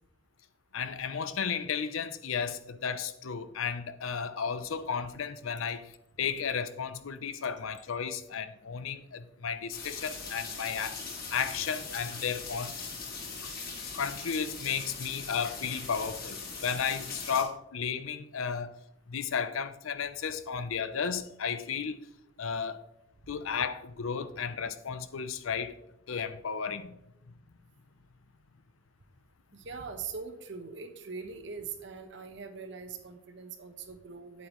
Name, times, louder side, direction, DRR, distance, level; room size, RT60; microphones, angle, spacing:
voice 1, 0.7-11.0 11.3-12.7 13.9-18.8 19.1-22.0 22.4-22.8 23.3-25.8 26.1-27.0, left 6 dB, 80° left, 0.6 m, -33 dB
sound 1, 9.7-17.4, left 4 dB, 50° left, 2.0 m, -40 dB
voice 2, 29.5-34.5, right 5 dB, 60° right, 1.0 m, -42 dB
8.7 x 8.4 x 3.0 m
head